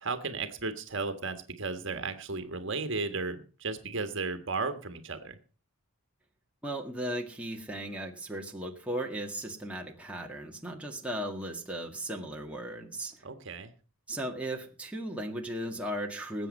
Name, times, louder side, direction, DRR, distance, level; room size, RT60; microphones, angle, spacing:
voice 1, 0.0-5.4 13.2-13.7, right 4 dB, 55° right, 9 dB, 1.6 m, -34 dB
voice 2, 6.6-13.3 14.1-16.5, right 1 dB, 5° right, 0 dB, 1.7 m, -36 dB
19.5 x 8.1 x 5.4 m, 0.36 s
head